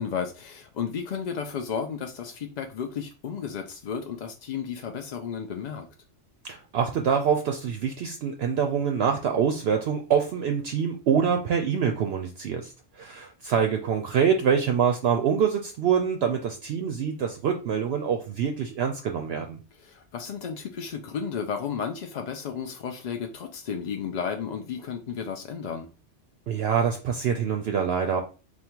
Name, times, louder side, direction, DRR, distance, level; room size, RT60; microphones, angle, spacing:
voice 1, 0.0-5.9 19.7-25.9, left 7 dB, 65° left, 0.4 m, -33 dB
voice 2, 6.4-19.6 26.5-28.2, right 7 dB, 65° right, 0.7 m, -25 dB
3.5 x 2.2 x 4.4 m
omnidirectional pair, 1.3 m